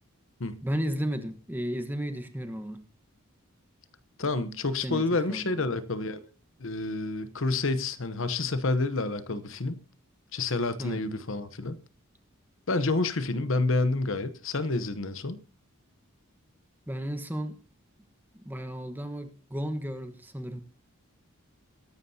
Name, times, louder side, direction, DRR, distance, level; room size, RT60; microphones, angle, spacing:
voice 1, 0.6-2.8 4.8-5.0 5.3-5.7 10.8-11.0 16.9-17.5 18.3-20.6, equal, 10° right, 1.2 m, -33 dB
voice 2, 4.2-6.2 6.6-9.8 10.3-11.8 12.7-15.4, left 3 dB, 65° left, 0.9 m, -29 dB
22.0 x 11.0 x 2.8 m
head